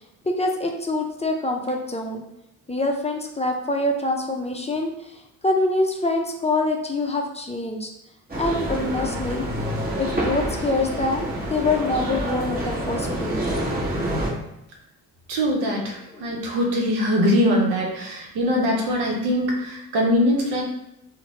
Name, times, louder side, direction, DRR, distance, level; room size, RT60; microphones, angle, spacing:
voice 1, 0.2-2.2 2.7-7.9 8.4-9.5 10.0-13.4 16.1-16.4, left 2 dB, 15° left, 1 dB, 0.5 m, -25 dB
sound 1, 8.3-14.3, right 1 dB, 25° right, 1.0 m, -27 dB
voice 2, 15.3-20.6, equal, 85° right, -1 dB, 0.7 m, -22 dB
3.0 x 2.1 x 2.8 m, 0.85 s
supercardioid pair, 45°, 39 cm